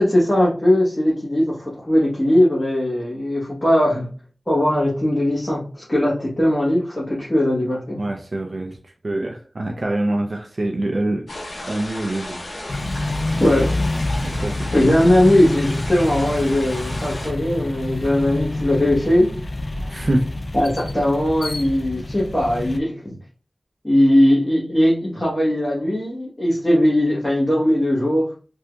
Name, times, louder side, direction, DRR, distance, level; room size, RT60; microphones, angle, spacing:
voice 1, 0.0-4.1 4.5-8.0 13.4-13.7 14.7-19.3 20.5-23.2 23.8-28.3, left 1 dB, 25° left, -6 dB, 1.2 m, -19 dB
voice 2, 8.0-12.4 14.2-15.1 19.9-20.3, right 1 dB, 60° right, 3 dB, 0.4 m, -25 dB
sound 1, 11.3-17.3, left 1 dB, 85° left, 1.2 m, -34 dB
sound 2, 12.7-22.8, left 2 dB, 60° left, 0.4 m, -27 dB
3.4 x 2.7 x 2.3 m, 0.39 s
wide cardioid pair, 50°, 0 cm